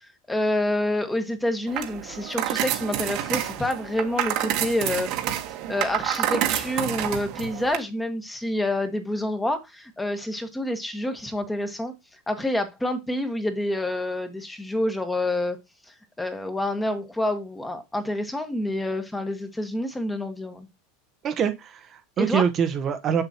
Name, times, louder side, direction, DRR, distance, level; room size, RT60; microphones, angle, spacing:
voice 1, 0.0-5.1 5.7-11.9 12.3-15.6 15.9-20.7 22.2-22.4, left 1 dB, 10° left, 1.3 m, -28 dB
sound 1, 1.7-7.8, right 12 dB, 55° right, 1.3 m, -28 dB
voice 2, 21.2-23.2, right 7 dB, 35° right, 0.9 m, -25 dB
6.9 x 6.9 x 2.9 m
supercardioid pair, 125°, 0 cm